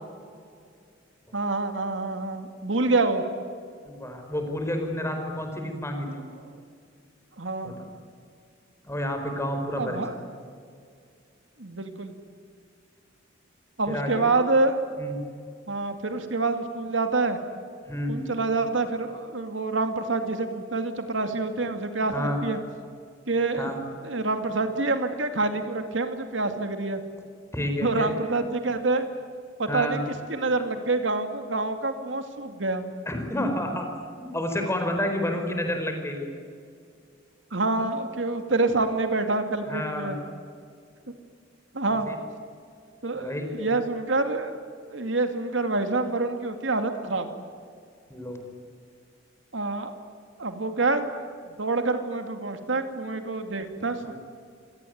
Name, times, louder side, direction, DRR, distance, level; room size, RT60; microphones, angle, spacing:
voice 1, 1.3-3.2 7.4-7.8 9.8-10.1 11.6-12.1 13.8-14.8 15.7-17.4 18.1-22.6 23.3-23.7 24.0-27.0 27.8-29.1 29.6-30.0 30.3-32.8 37.5-40.2 41.7-42.1 43.0-44.5 44.9-47.3 49.5-49.9 50.4-51.1 51.5-54.1, right 3 dB, 75° right, 7 dB, 2.3 m, -27 dB
voice 2, 3.8-6.2 7.6-7.9 8.8-10.2 13.9-14.2 15.0-15.2 17.8-18.2 22.1-22.4 23.6-23.8 27.5-28.1 29.7-30.0 33.1-33.9 34.2-36.3 39.7-40.2 42.1-42.2 43.1-43.7 48.1-48.4 54.0-54.1, left 1 dB, 15° left, 4 dB, 4.7 m, -30 dB
28.0 x 18.0 x 9.4 m, 2.2 s
head